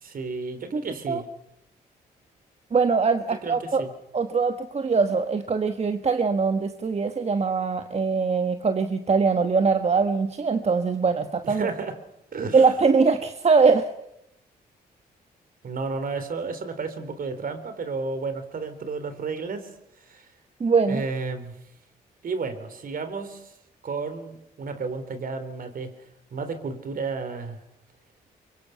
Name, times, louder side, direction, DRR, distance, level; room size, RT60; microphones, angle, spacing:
voice 1, 0.0-1.3 3.4-3.9 11.4-12.0 12.3-12.7 15.6-19.7 20.1-20.3 20.9-21.6 22.2-23.5 23.8-25.9 26.3-27.6, right 4 dB, 60° right, 10 dB, 3.5 m, -32 dB
voice 2, 2.7-3.9 4.1-11.7 12.5-13.9 20.6-21.0, right 4 dB, 40° right, 8 dB, 1.4 m, -22 dB
24.0 x 23.5 x 5.8 m, 0.81 s
cardioid pair, 70°, 17 cm